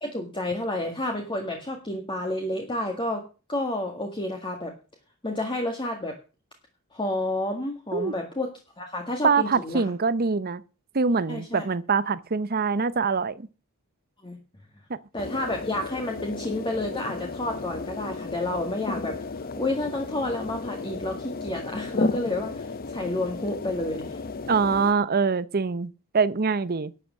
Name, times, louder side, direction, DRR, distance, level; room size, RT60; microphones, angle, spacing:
voice 1, 0.0-4.7 5.2-6.2 6.9-8.5 8.8-9.8 11.3-11.6 14.2-14.4 15.1-19.2 19.6-24.2, left 1 dB, 20° left, 1.8 m, -30 dB
voice 2, 9.2-10.6 10.9-13.5 14.9-15.0 24.5-26.9, right 5 dB, 45° right, 0.7 m, -24 dB
sound 1, 15.2-24.9, left 3 dB, 40° left, 0.7 m, -33 dB
12.0 x 7.9 x 7.5 m
head